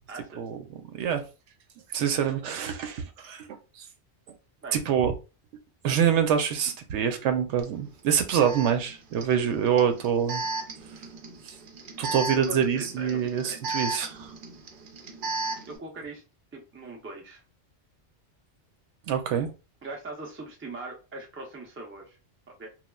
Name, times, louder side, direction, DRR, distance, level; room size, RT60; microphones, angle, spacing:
voice 1, 0.1-0.4 4.6-4.8 12.3-13.2 15.6-16.2 16.5-17.4 19.8-22.2 22.6-22.7, right 2 dB, 15° right, 0.4 m, -40 dB
voice 2, 1.9-3.5 4.7-5.1 5.8-10.4 12.0-14.3 19.1-19.5, right 8 dB, 90° right, 0.9 m, -25 dB
Alarm, 7.6-7.7 8.4-15.8, right 3 dB, 55° right, 0.6 m, -35 dB
3.1 x 2.3 x 2.2 m
omnidirectional pair, 1.2 m